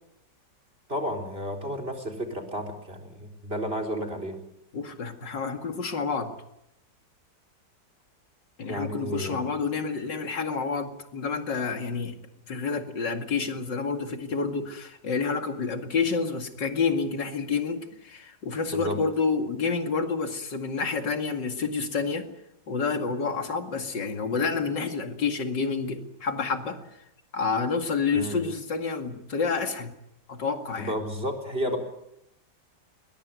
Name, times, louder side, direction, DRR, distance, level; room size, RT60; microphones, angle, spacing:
voice 1, 0.9-4.4 8.7-9.4 18.7-19.0 28.1-28.4 30.8-31.8, equal, 35° right, 3 dB, 4.2 m, -32 dB
voice 2, 4.7-6.3 8.6-12.1 12.5-22.2 22.7-26.8 27.3-29.9 30.3-30.9, left 5 dB, 85° left, 6 dB, 2.9 m, -29 dB
21.5 x 21.0 x 9.4 m, 0.82 s
omnidirectional pair, 1.9 m